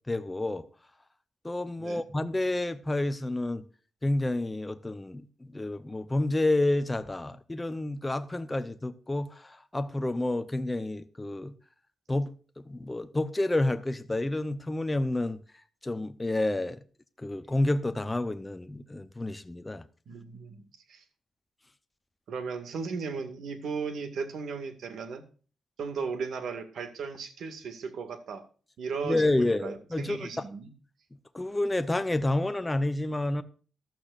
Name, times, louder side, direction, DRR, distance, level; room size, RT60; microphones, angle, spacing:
voice 1, 0.1-0.6 1.4-3.7 4.0-11.5 12.1-12.3 12.6-15.4 15.8-16.8 17.2-19.8 29.0-30.5 31.3-33.4, left 2 dB, 15° left, 0.7 m, -29 dB
voice 2, 20.1-20.6 20.9-21.0 22.3-25.2 25.8-28.4 28.8-30.7, right 5 dB, 75° right, 2.0 m, -36 dB
15.0 x 12.0 x 2.5 m
wide cardioid pair, 130°, 0 cm